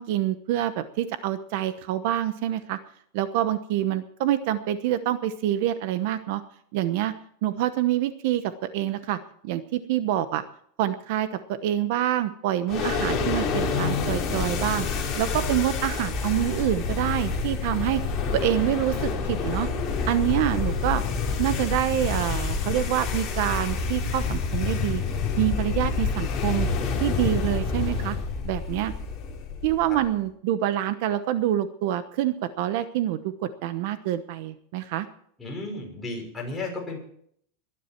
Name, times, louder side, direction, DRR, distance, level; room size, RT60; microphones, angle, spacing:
voice 1, 0.0-2.8 3.1-6.4 6.7-7.1 7.4-9.2 9.4-10.4 10.8-14.9 15.2-18.0 18.3-19.7 20.1-21.0 21.4-25.0 25.4-26.7 27.0-28.2 28.4-28.9 29.6-35.1, right 12 dB, 55° right, 12 dB, 1.0 m, -26 dB
sound 1, 12.7-30.1, left 5 dB, 25° left, 3.5 m, -28 dB
voice 2, 35.4-37.0, left 2 dB, 10° left, -2 dB, 5.8 m, -34 dB
22.0 x 11.0 x 4.5 m, 0.65 s
supercardioid pair, 160°, 0 cm